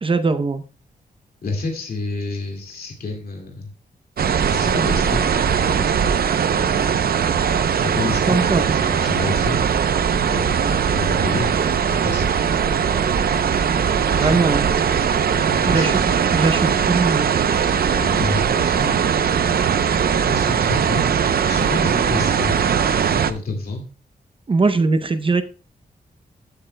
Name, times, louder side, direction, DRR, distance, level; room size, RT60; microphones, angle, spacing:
voice 1, 0.0-0.6 8.3-8.7 14.1-14.7 15.7-16.0 16.3-17.3 24.5-25.4, right 3 dB, 35° right, 9 dB, 0.7 m, -20 dB
voice 2, 1.4-3.7 4.4-6.1 7.7-9.6 10.3-12.4 13.9-14.7 15.5-15.9 17.9-19.3 20.2-21.2 21.5-22.7 23.1-23.8, left 2 dB, 70° left, 2 dB, 2.3 m, -29 dB
sound 1, 4.2-23.3, right 7 dB, 75° right, 0.7 m, -20 dB
13.5 x 8.4 x 2.2 m, 0.37 s
wide cardioid pair, 140°, 16 cm